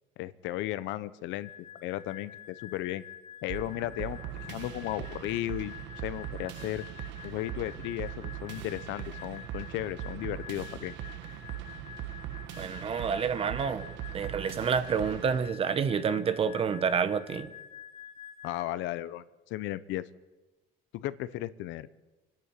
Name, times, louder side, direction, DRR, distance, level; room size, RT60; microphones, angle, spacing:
voice 1, 0.2-1.5 1.8-3.0 3.4-6.8 7.2-10.9 18.4-20.1 20.9-21.9, left 15 dB, 70° left, 16 dB, 0.9 m, -35 dB
sound 1, 1.3-18.6, left 9 dB, 85° left, 3.1 m, -48 dB
sound 2, 3.5-15.5, right 12 dB, 65° right, 1.5 m, -41 dB
voice 2, 12.6-13.9 14.1-17.5, right 6 dB, 30° right, 12 dB, 1.0 m, -28 dB
27.0 x 10.5 x 8.9 m, 1.1 s
cardioid pair, 165°, 20 cm